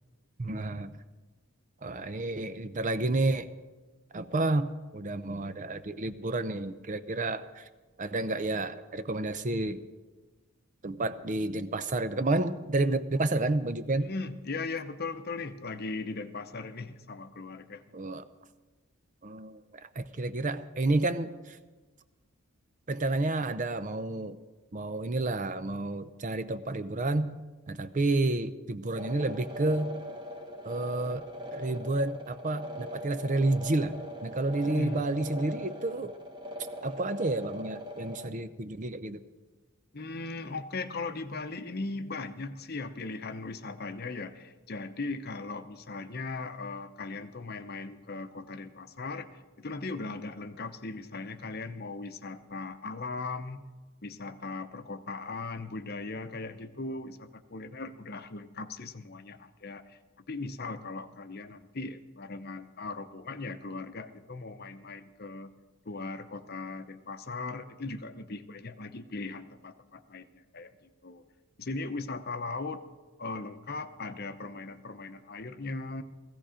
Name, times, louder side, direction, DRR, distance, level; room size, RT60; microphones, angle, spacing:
voice 1, 0.4-0.9 1.8-3.5 4.1-7.7 8.0-9.8 10.8-14.1 17.9-18.2 19.2-21.6 22.9-24.4 24.7-27.4 27.7-30.0 30.6-36.1 36.8-39.2, right 2 dB, 35° right, 12 dB, 0.6 m, -30 dB
voice 2, 14.0-17.8 34.6-35.1 39.9-53.6 54.0-60.0 60.3-65.5 65.8-71.2 71.6-72.8 73.2-76.0, left 3 dB, 45° left, 9 dB, 0.8 m, -38 dB
sound 1, 28.9-38.3, equal, 20° right, 1.4 m, -40 dB
16.5 x 15.5 x 5.1 m, 1.3 s
head